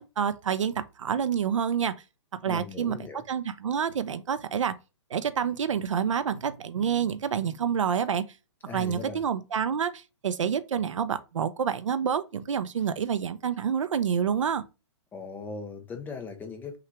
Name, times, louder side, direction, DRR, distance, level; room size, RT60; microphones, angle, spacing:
voice 1, 0.0-1.9 2.3-3.0 3.3-4.7 5.1-8.2 8.7-14.6, right 7 dB, 85° right, 0.6 m, -28 dB
voice 2, 2.5-3.2 8.7-9.2 15.1-16.8, left 4 dB, 10° left, 0.7 m, -39 dB
5.9 x 2.4 x 3.2 m
hypercardioid pair, 145°, 16 cm